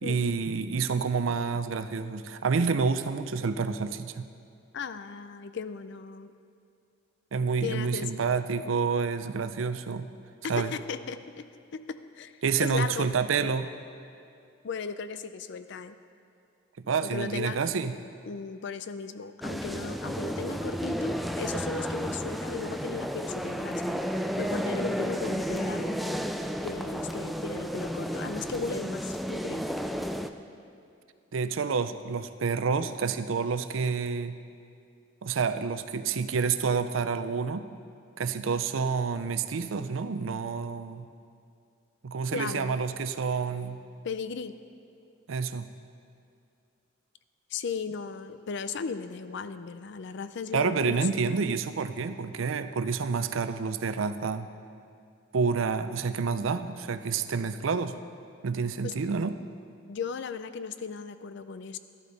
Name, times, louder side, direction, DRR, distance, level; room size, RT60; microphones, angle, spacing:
voice 1, 0.0-4.3 7.3-10.1 10.5-10.7 12.4-13.7 16.8-17.9 31.3-34.3 35.2-37.7 38.2-41.1 42.0-43.8 45.3-45.7 50.5-54.5 55.3-57.9 58.4-59.4, right 5 dB, 90° right, 11 dB, 0.5 m, -28 dB
voice 2, 4.7-6.3 7.6-8.2 10.4-12.3 12.6-13.1 14.6-16.0 17.0-17.6 18.3-24.0 24.4-26.1 26.6-29.6 42.3-42.8 44.0-44.5 47.5-51.1 58.8-58.9 59.9-61.8, left 5 dB, 65° left, 12 dB, 0.5 m, -36 dB
sound 1, 19.4-30.3, equal, ahead, 0.3 m, -32 dB
12.5 x 12.0 x 4.0 m, 2.5 s
head